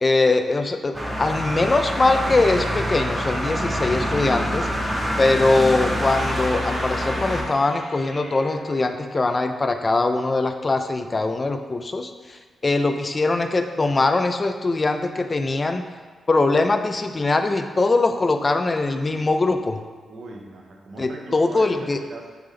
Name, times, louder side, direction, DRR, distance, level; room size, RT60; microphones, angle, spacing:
voice 1, 0.0-4.7 5.2-15.8 16.3-19.8 21.0-22.0, left 3 dB, 35° left, 7 dB, 0.3 m, -22 dB
sound 1, 0.9-7.4, equal, 10° right, 0.7 m, -26 dB
sound 2, 6.0-9.7, equal, 85° left, 1.4 m, -38 dB
voice 2, 20.1-22.4, right 2 dB, 70° right, 0 dB, 0.6 m, -39 dB
3.4 x 3.1 x 3.5 m, 1.4 s
supercardioid pair, 55°, 0 cm